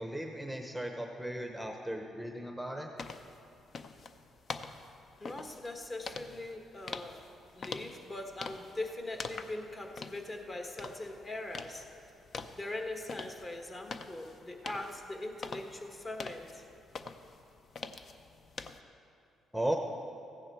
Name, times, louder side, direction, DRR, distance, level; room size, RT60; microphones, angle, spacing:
voice 1, 0.0-2.9 19.5-19.8, right 1 dB, ahead, 3 dB, 0.8 m, -36 dB
sound 1, 3.0-18.8, left 4 dB, 50° left, 0.5 m, -45 dB
voice 2, 5.2-7.2 7.5-11.9 12.5-16.6, left 2 dB, 30° left, 3 dB, 1.3 m, -41 dB
15.0 x 9.6 x 4.5 m, 2.7 s
cardioid pair, 90°, 0 cm